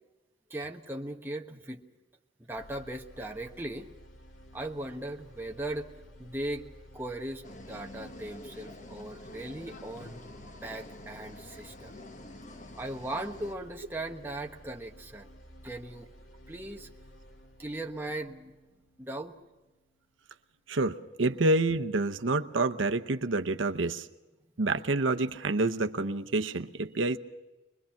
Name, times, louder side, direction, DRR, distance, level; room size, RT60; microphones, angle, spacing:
voice 1, 0.5-1.8 2.4-3.9 4.5-5.9 6.2-6.7 6.9-11.9 12.8-15.3 15.6-16.1 16.5-16.9 17.6-18.5 19.0-19.3, right 1 dB, 10° right, 1 dB, 1.2 m, -38 dB
sound 1, 2.5-20.5, equal, 85° left, 2.4 m, -54 dB
sound 2, 7.4-13.6, left 1 dB, 40° left, 1.1 m, -47 dB
voice 2, 20.7-24.1 24.6-27.2, right 2 dB, 80° right, 7 dB, 0.8 m, -28 dB
25.0 x 21.5 x 5.8 m, 1.1 s
head